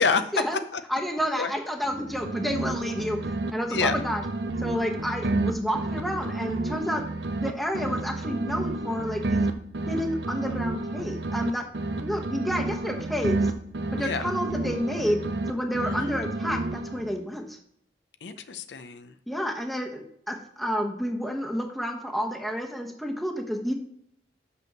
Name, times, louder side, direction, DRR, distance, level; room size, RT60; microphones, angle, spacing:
voice 1, 0.0-0.3 0.7-0.8 1.4-1.5 3.7-3.9 14.0-14.3 15.9-16.1 18.2-19.1, left 5 dB, 80° left, 10 dB, 0.6 m, -27 dB
voice 2, 0.9-4.2 4.6-7.1 7.4-9.4 9.9-11.6 12.0-13.5 13.9-15.2 15.5-17.6 19.3-23.7, equal, ahead, 2 dB, 1.0 m, -30 dB
sound 1, 1.8-3.5 3.7-7.5 7.7-11.5 11.7-15.5 15.7-17.2, right 2 dB, 75° right, 0.7 m, -30 dB
6.2 x 5.5 x 6.6 m, 0.73 s
head